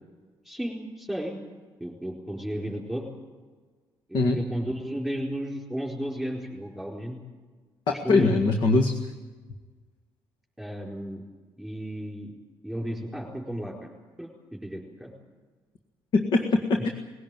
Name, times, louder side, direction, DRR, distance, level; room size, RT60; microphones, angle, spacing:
voice 1, 0.4-1.4 1.8-3.1 4.1-7.2 7.9-8.4 10.6-11.2 11.6-12.3 12.6-13.7 14.2-14.3 14.6-15.1, equal, ahead, -1 dB, 4.4 m, -33 dB
voice 2, 7.9-8.9 16.1-16.9, left 3 dB, 65° left, 4 dB, 1.8 m, -22 dB
20.5 x 16.5 x 9.1 m, 1.4 s
cardioid pair, 125°, 9 cm